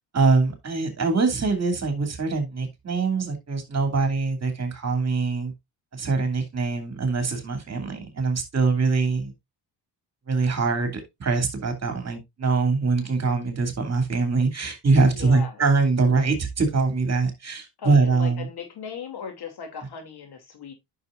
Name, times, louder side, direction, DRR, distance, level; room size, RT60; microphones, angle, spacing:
voice 1, 0.1-5.5 5.9-9.3 10.3-18.5, right 4 dB, 35° right, 2.7 m, -23 dB
voice 2, 15.1-15.6 17.8-20.7, left 6 dB, 60° left, 2.8 m, -37 dB
9.5 x 6.4 x 2.5 m
supercardioid pair, 65°, 43 cm